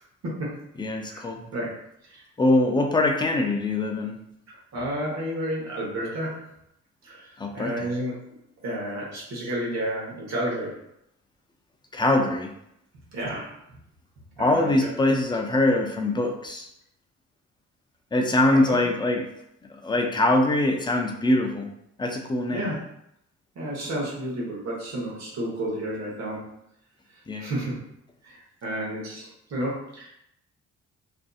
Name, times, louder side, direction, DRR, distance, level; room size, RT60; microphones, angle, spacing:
voice 1, 0.8-1.5 2.4-4.1 7.4-7.9 11.9-12.5 14.4-16.7 18.1-19.3 19.7-21.7 22.0-22.7 27.3-27.5, left 2 dB, 15° left, 2 dB, 0.4 m, -23 dB
voice 2, 4.7-6.4 7.0-7.2 7.5-8.2 8.6-10.8 13.1-13.5 14.4-14.7 18.5-18.8 22.5-22.8 23.6-26.4 27.4-27.7 28.2-28.3 28.6-30.1, right 1 dB, 60° right, -4 dB, 1.0 m, -31 dB
2.5 x 2.5 x 2.3 m, 0.78 s
cardioid pair, 90°, 30 cm